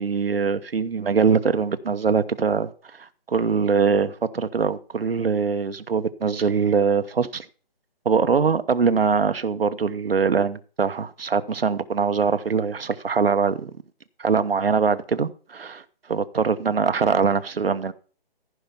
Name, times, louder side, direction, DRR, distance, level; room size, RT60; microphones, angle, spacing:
voice 1, 0.0-2.7 3.0-7.4 8.0-13.7 14.2-17.9, right 5 dB, 70° right, 1.1 m, -22 dB
14.5 x 5.8 x 5.6 m
hypercardioid pair, 180°, 31 cm